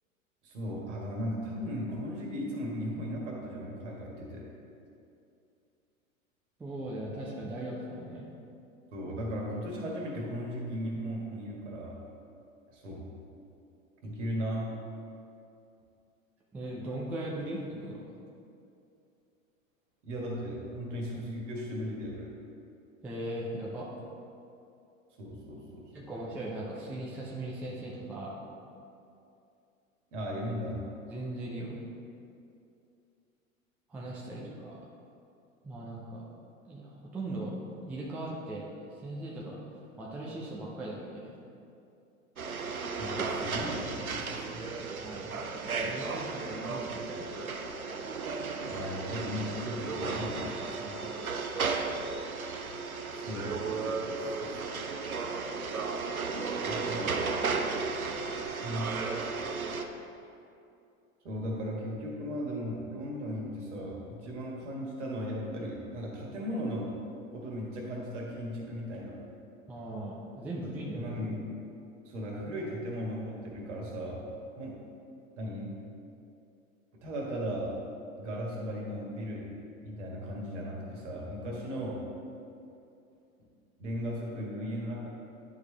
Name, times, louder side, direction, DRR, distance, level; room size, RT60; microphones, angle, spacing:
voice 1, 0.4-4.5 8.9-12.0 12.7-13.0 14.0-14.7 20.0-22.3 25.2-26.1 30.1-30.8 43.0-44.7 48.6-51.1 53.1-54.8 56.6-57.2 58.6-59.0 61.2-66.9 67.3-69.2 70.9-71.5 72.0-74.2 74.6-74.7 75.4-75.7 77.0-77.7 78.2-79.4 79.8-82.0 83.8-85.1, equal, 60° right, -2 dB, 1.8 m, -37 dB
voice 2, 6.6-8.3 16.5-18.0 23.0-23.9 25.9-28.3 31.1-31.8 33.9-34.8 35.6-36.2 36.7-37.5 37.8-38.6 39.0-39.6 40.0-41.3 45.0-47.3 48.7-48.8 50.8-51.0 69.7-71.1, right 1 dB, 5° right, -4 dB, 0.3 m, -39 dB
sound 1, 42.4-59.8, right 4 dB, 85° right, 0.6 m, -34 dB
10.5 x 4.7 x 3.3 m, 2.6 s
figure-of-eight pair, 90°, 41 cm